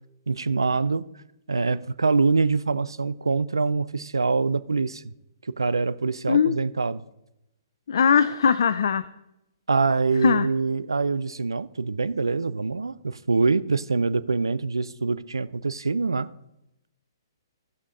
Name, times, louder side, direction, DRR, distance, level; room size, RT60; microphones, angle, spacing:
voice 1, 0.3-1.1 1.5-5.0 5.4-7.0 9.7-16.3, right 4 dB, 80° right, 0.5 m, -24 dB
voice 2, 7.9-9.0 10.2-10.5, left 7 dB, 60° left, 0.5 m, -20 dB
17.0 x 5.8 x 3.8 m
figure-of-eight pair, 125°, 2 cm